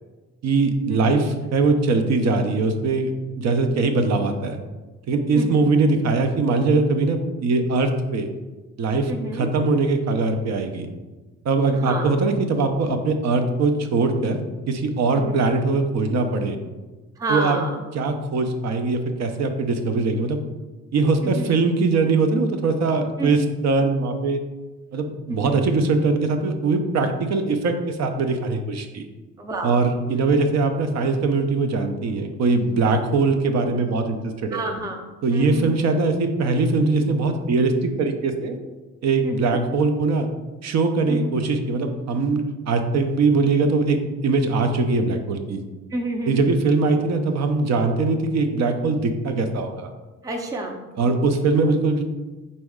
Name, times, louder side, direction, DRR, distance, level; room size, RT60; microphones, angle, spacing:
voice 1, 0.4-4.6 5.1-8.3 8.8-10.9 11.4-14.4 14.7-16.6 17.3-17.6 17.9-20.4 20.9-23.4 23.6-24.4 24.9-29.0 29.6-34.6 35.2-38.6 39.0-40.3 40.6-45.6 46.3-49.9 51.0-52.0, right 3 dB, 60° right, 6 dB, 0.6 m, -21 dB
voice 2, 5.3-5.7 9.1-9.5 11.7-12.1 15.1-15.4 17.2-17.8 21.2-21.5 23.2-23.3 25.3-25.6 29.4-29.8 32.8-32.9 34.5-35.0 35.3-35.7 39.2-39.6 41.1-41.3 45.9-46.5 50.2-50.8, right 2 dB, 10° right, 3 dB, 0.5 m, -29 dB
4.2 x 3.0 x 3.6 m, 1.2 s
cardioid pair, 90°, 30 cm